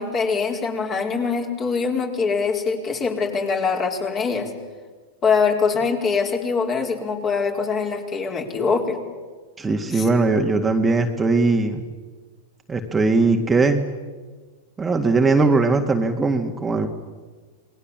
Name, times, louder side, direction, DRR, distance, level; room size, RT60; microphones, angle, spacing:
voice 1, 0.0-4.5 5.2-9.0 9.9-10.1, left 5 dB, 30° left, 2 dB, 4.8 m, -23 dB
voice 2, 9.6-11.8 12.7-13.9 14.8-16.9, right 3 dB, 15° right, 3 dB, 2.0 m, -20 dB
28.0 x 20.5 x 7.5 m, 1.4 s
hypercardioid pair, 105°, 0 cm